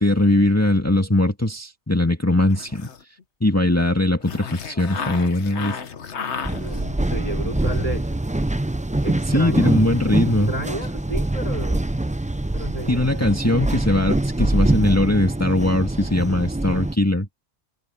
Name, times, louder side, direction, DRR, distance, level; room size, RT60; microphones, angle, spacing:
voice 1, 0.0-2.9 3.4-5.8 9.3-10.5 12.9-17.3, left 1 dB, 15° left, 2.0 m, -20 dB
sound 1, 2.5-3.2 4.2-7.0, left 6 dB, 75° left, 1.5 m, -33 dB
sound 2, 6.4-16.9, right 1 dB, 10° right, 0.4 m, -24 dB
voice 2, 6.4-8.2 9.0-9.7 10.5-11.9 12.5-13.1, right 1 dB, 30° right, 5.0 m, -31 dB
omnidirectional pair, 1.2 m